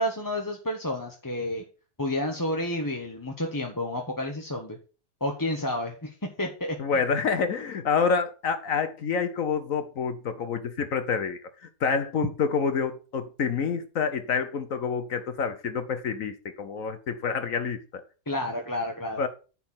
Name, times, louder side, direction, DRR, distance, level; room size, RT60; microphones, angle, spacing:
voice 1, 0.0-1.6 2.0-4.8 5.2-6.8 18.3-19.2, left 1 dB, 15° left, 1.1 m, -30 dB
voice 2, 6.8-11.4 11.8-18.0 19.2-19.3, left 5 dB, 65° left, 1.2 m, -27 dB
10.5 x 4.4 x 7.3 m
omnidirectional pair, 1.6 m